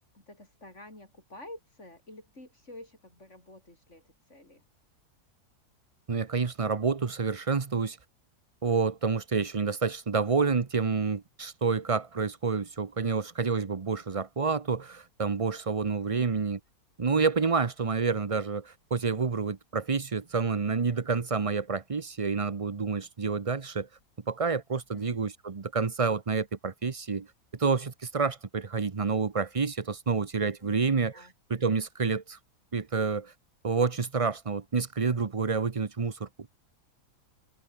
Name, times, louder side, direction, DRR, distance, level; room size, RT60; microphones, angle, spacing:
voice 1, 0.1-4.6 16.1-16.3 24.9-25.2 30.6-31.3, left 1 dB, 45° left, 8.3 m, -49 dB
voice 2, 6.1-8.0 8.6-16.6 17.0-23.9 24.3-27.3 27.5-32.4 32.7-33.3 33.6-36.3, right 5 dB, 30° right, 0.6 m, -28 dB
omnidirectional pair, 1.7 m